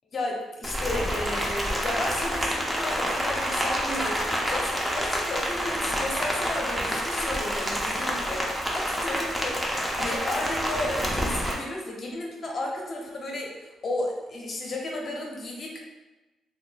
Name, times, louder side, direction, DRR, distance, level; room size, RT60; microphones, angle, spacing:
voice 1, 0.1-15.8, left 1 dB, 50° left, -1 dB, 0.8 m, -33 dB
Rain, 0.6-11.5, equal, 5° right, 0.6 m, -28 dB
2.7 x 2.3 x 3.8 m, 1.1 s
cardioid pair, 90°, 0 cm